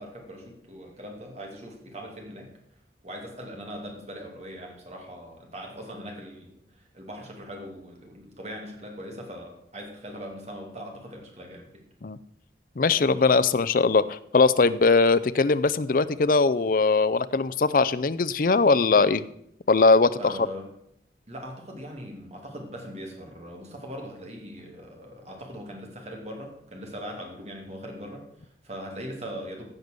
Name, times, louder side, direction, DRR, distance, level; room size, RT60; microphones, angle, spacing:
voice 1, 0.0-2.5 3.0-6.5 6.8-11.8 20.2-20.7 21.3-29.7, equal, 40° right, 1 dB, 2.7 m, -40 dB
voice 2, 12.8-19.2 19.7-20.3, left 4 dB, 50° left, 14 dB, 0.5 m, -21 dB
15.5 x 5.3 x 6.7 m, 0.73 s
head